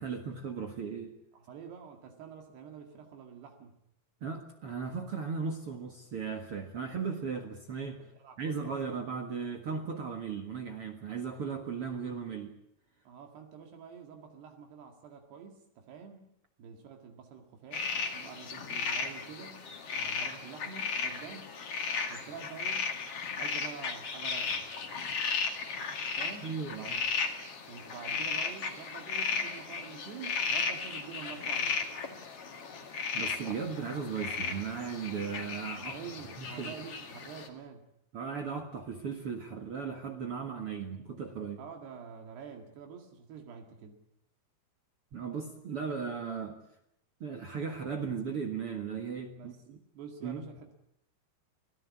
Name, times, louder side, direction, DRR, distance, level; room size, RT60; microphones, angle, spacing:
voice 1, 0.0-1.1 4.2-8.0 8.4-12.5 26.4-26.9 33.1-36.0 36.4-36.7 38.1-41.6 45.1-46.6 47.2-49.8 50.2-50.5, right 6 dB, 55° right, 4 dB, 1.7 m, -37 dB
voice 2, 1.3-3.7 8.0-8.8 13.1-16.3 16.6-19.6 20.0-21.5 22.1-22.9 23.3-24.7 26.2-26.5 26.8-27.0 27.7-31.8 35.9-37.8 41.6-44.0 49.4-49.6 50.0-50.7, right 6 dB, 75° right, 3 dB, 4.0 m, -47 dB
sound 1, 17.7-37.5, left 5 dB, 40° left, 2.6 m, -35 dB
26.5 x 17.5 x 8.5 m, 0.74 s
omnidirectional pair, 4.9 m